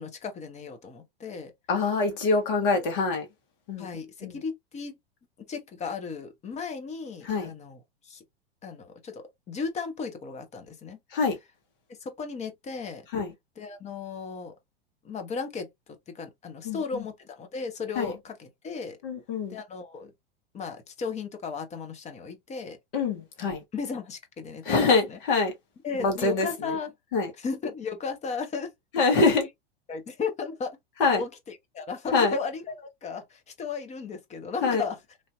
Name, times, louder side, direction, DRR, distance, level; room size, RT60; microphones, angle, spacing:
voice 1, 0.0-1.5 3.8-4.9 5.4-8.2 8.6-11.0 12.0-13.0 13.6-14.5 15.0-15.7 16.1-19.0 19.5-20.1 20.5-22.8 23.4-25.2 25.8-26.9 27.4-28.7 29.3-29.5 29.9-30.8 31.1-35.0, left 5 dB, 20° left, 0.8 m, -35 dB
voice 2, 1.7-3.2 3.7-3.9 4.2-4.4 7.2-7.5 11.1-11.4 13.1-13.3 16.6-17.0 17.9-18.0 19.0-19.6 22.9-23.6 24.6-25.5 26.0-26.5 27.1-27.3 28.9-29.4 31.0-31.2 32.1-32.3 34.6-34.8, left 4 dB, 60° left, 1.7 m, -24 dB
3.2 x 2.7 x 2.3 m
hypercardioid pair, 100°, 30 cm